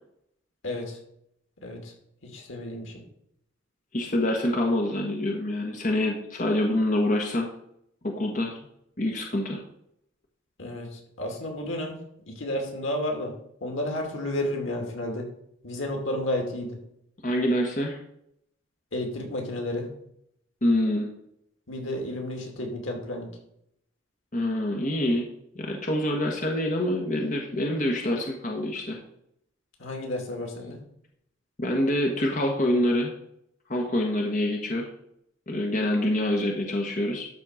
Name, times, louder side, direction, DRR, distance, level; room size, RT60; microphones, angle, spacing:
voice 1, 0.6-1.0 1.6-1.9 2.2-3.0 10.6-11.9 12.3-13.3 13.6-15.2 15.6-16.8 18.9-19.9 21.7-23.3 29.8-30.8, left 1 dB, 85° left, 2 dB, 2.6 m, -31 dB
voice 2, 3.9-7.5 8.0-8.6 9.0-9.6 17.2-18.0 20.6-21.1 24.3-25.3 25.5-29.0 31.6-33.1 33.7-34.9 35.5-37.3, left 1 dB, 40° left, 1 dB, 1.4 m, -26 dB
12.5 x 4.3 x 6.4 m, 0.74 s
head